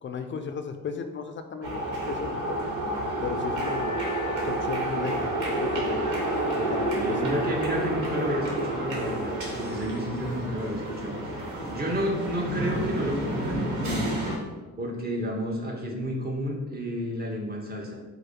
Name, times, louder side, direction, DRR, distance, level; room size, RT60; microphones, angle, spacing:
voice 1, 0.0-1.8 2.1-2.7 3.2-4.0 4.4-7.2, left 6 dB, 40° left, 7 dB, 0.4 m, -35 dB
sound 1, 1.6-14.4, right 1 dB, 75° right, 1.3 m, -29 dB
voice 2, 6.9-14.2 14.8-18.0, equal, 30° right, -1 dB, 1.2 m, -31 dB
4.8 x 2.1 x 4.8 m, 1.2 s
cardioid pair, 90°, 30 cm